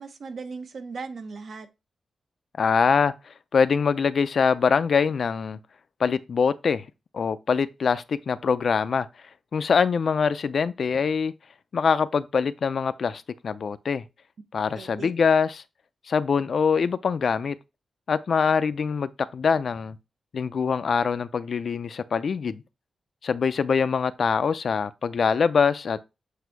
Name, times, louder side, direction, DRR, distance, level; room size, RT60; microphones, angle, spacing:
voice 1, 0.0-1.7 14.7-15.1, right 4 dB, 60° right, 0.9 m, -37 dB
voice 2, 2.6-5.6 6.0-6.9 7.1-9.1 9.5-11.3 11.7-14.0 14.5-15.6 16.1-17.6 18.1-20.0 20.3-22.6 23.2-26.0, left 6 dB, 55° left, 0.4 m, -24 dB
8.1 x 2.7 x 4.5 m
wide cardioid pair, 120°, 0 cm